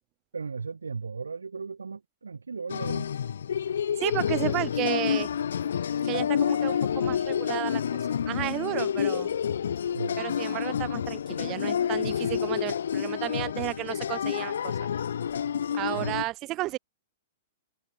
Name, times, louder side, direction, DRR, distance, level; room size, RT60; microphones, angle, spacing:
voice 1, 0.3-3.1 9.9-10.2 16.0-16.2, right 5 dB, 85° right, 1.5 m, -36 dB
sound 1, 2.7-16.2, left 8 dB, 70° left, 0.8 m, -29 dB
voice 2, 4.0-5.3 6.0-7.8 8.3-9.3 10.2-14.8 15.7-16.8, right 18 dB, 35° right, 0.3 m, -32 dB
hypercardioid pair, 110°, 0 cm